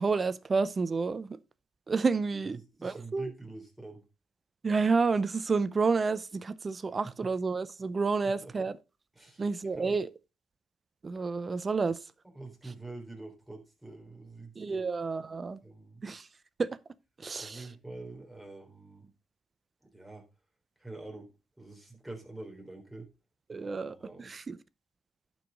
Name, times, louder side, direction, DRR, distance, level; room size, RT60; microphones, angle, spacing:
voice 1, 0.0-1.4 1.9-3.3 4.6-8.8 9.4-10.1 11.0-12.0 14.6-15.6 16.0-16.3 16.6-16.7 17.2-17.7 23.5-24.6, right 4 dB, 35° right, 0.6 m, -30 dB
voice 2, 2.4-4.0 8.4-8.7 9.2-9.5 9.7-10.0 12.2-14.8 15.6-16.0 17.4-19.1 19.8-20.2 20.8-21.3 21.6-23.1 23.6-24.3, right 2 dB, 5° right, 3.6 m, -46 dB
11.5 x 4.8 x 4.0 m
cardioid pair, 85°, 0 cm